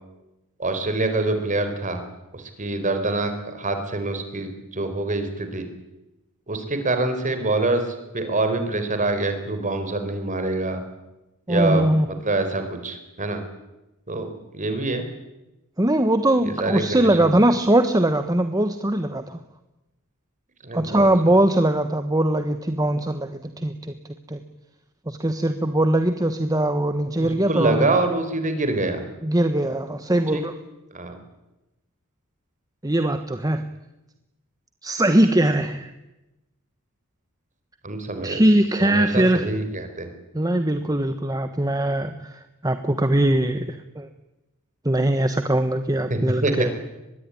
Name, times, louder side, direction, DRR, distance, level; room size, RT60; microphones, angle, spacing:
voice 1, 0.6-2.0 2.3-5.6 6.5-10.8 11.5-13.4 14.1-15.0 16.4-17.3 20.6-21.1 27.2-29.0 30.3-30.4 30.9-31.1 37.8-38.4 38.8-40.1 46.1-46.7, right 2 dB, 35° right, 8 dB, 4.5 m, -25 dB
voice 2, 11.5-12.1 15.8-19.4 20.7-23.8 24.3-24.4 25.1-27.9 29.2-30.5 32.8-33.6 34.8-35.9 38.2-39.4 40.3-44.1 44.8-46.7, right 1 dB, 15° right, 8 dB, 1.2 m, -21 dB
24.0 x 21.0 x 10.0 m, 0.98 s
head